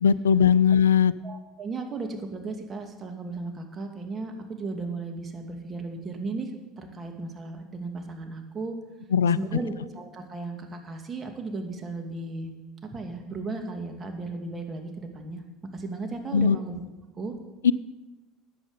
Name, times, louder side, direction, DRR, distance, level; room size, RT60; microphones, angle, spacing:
voice 1, 0.0-1.1 9.1-9.4 16.3-16.6 17.6-17.7, left 7 dB, 80° left, 19 dB, 0.4 m, -19 dB
voice 2, 1.2-6.5 6.8-8.8 9.3-12.5 12.9-15.4 15.7-16.8 17.2-17.3, right 3 dB, 30° right, 4 dB, 2.4 m, -35 dB
14.0 x 9.6 x 5.1 m, 1.1 s
hypercardioid pair, 70°, 0 cm